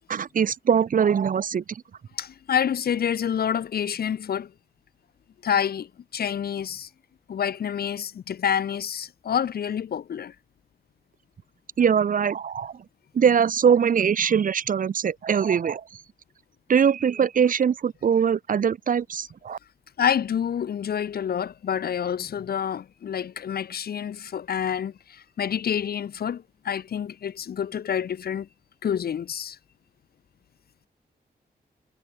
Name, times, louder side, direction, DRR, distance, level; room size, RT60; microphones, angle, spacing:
voice 1, 0.1-1.8 11.8-12.7 13.1-15.8 16.7-19.6, right 7 dB, 50° right, 0.6 m, -22 dB
voice 2, 2.1-4.5 5.4-6.9 7.3-10.3 20.0-28.5 28.8-29.6, left 8 dB, 65° left, 0.7 m, -28 dB
wide cardioid pair, 120°, 17 cm